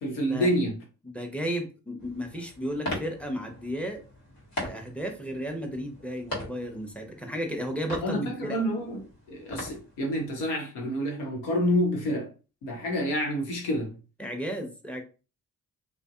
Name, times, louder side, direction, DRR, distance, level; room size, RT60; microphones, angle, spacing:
voice 1, 0.0-0.7 8.0-12.3 12.6-13.9, equal, 85° left, 0.9 m, -28 dB
voice 2, 1.0-4.0 4.6-8.6 14.2-15.0, equal, 5° left, 0.7 m, -33 dB
sound 1, 2.0-10.4, left 1 dB, 60° left, 1.3 m, -41 dB
2.5 x 2.2 x 2.4 m
hypercardioid pair, 40°, 41 cm